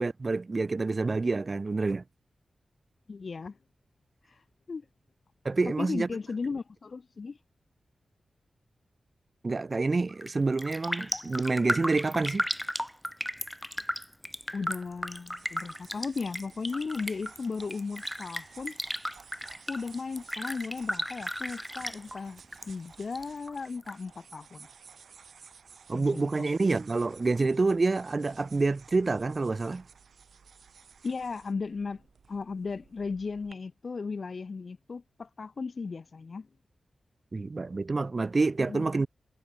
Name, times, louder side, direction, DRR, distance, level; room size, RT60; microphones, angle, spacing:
voice 1, 0.0-2.0 5.4-6.1 9.4-12.5 25.9-29.8 37.3-39.1, right 3 dB, 45° right, 1.6 m, -27 dB
voice 2, 3.1-3.6 4.3-4.8 5.7-7.4 14.5-18.8 19.7-24.7 25.9-26.5 31.0-32.0 32.3-36.5 38.7-38.8, left 4 dB, 60° left, 2.3 m, -36 dB
Raindrop, 10.1-10.3 10.6-22.7 22.9-23.9 24.3-24.4, equal, 5° left, 1.1 m, -35 dB
sound 1, 14.6-33.5, right 6 dB, 80° right, 4.1 m, -55 dB
cardioid pair, 50°, 0 cm